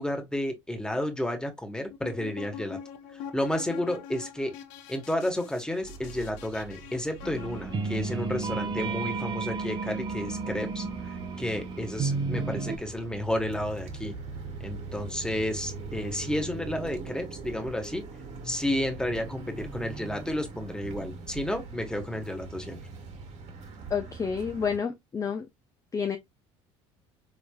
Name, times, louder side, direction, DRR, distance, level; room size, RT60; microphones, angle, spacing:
voice 1, 0.0-2.8 3.3-4.5 4.9-14.2 14.6-18.1 18.4-22.8, left 1 dB, 5° left, 1.4 m, -31 dB
sound 1, 1.9-8.2, left 8 dB, 75° left, 0.7 m, -44 dB
sound 2, 5.8-24.8, right 4 dB, 55° right, 1.5 m, -42 dB
sound 3, 7.2-12.8, right 4 dB, 35° right, 0.9 m, -32 dB
voice 2, 23.9-25.5 25.9-26.2, left 6 dB, 25° left, 0.6 m, -29 dB
3.8 x 3.3 x 2.3 m
supercardioid pair, 90°, 14 cm